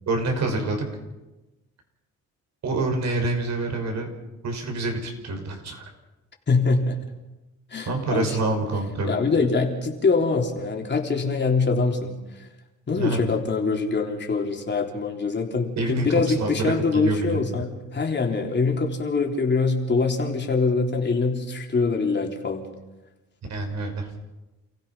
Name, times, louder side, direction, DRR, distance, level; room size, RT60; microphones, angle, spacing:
voice 1, 0.1-0.9 2.6-4.1 4.4-5.8 7.9-9.1 13.0-13.3 15.8-16.1 16.3-17.6 23.5-24.1, right 2 dB, 65° right, 3 dB, 5.9 m, -27 dB
voice 2, 6.5-7.0 7.7-8.4 9.0-12.5 12.9-22.7, left 4 dB, 35° left, 2 dB, 3.7 m, -24 dB
29.0 x 16.0 x 5.7 m, 1.1 s
cardioid pair, 90°, 30 cm